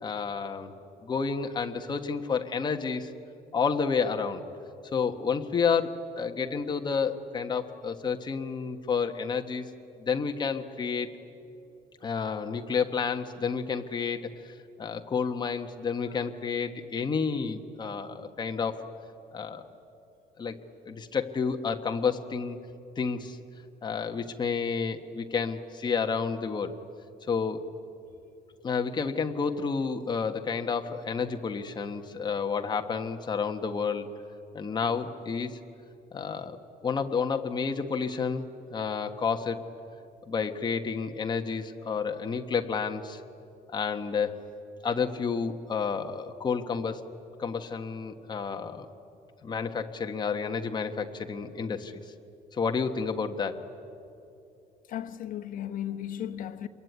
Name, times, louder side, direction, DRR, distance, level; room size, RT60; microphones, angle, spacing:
voice 1, 0.0-0.7 1.0-3.1 3.5-4.4 4.9-9.7 10.0-11.1 12.0-18.9 19.3-19.6 20.4-20.6 20.8-22.6 23.0-23.4 23.8-26.7 27.3-27.6 28.6-34.1 34.5-35.6 36.1-36.6 36.8-39.6 40.3-43.2 43.7-44.4 44.8-47.1 47.4-48.9 49.4-52.0 52.5-53.6, left 5 dB, 25° left, 1.4 m, -30 dB
voice 2, 54.9-56.7, left 10 dB, 60° left, 1.2 m, -35 dB
27.5 x 22.5 x 9.5 m
cardioid pair, 155°, 16 cm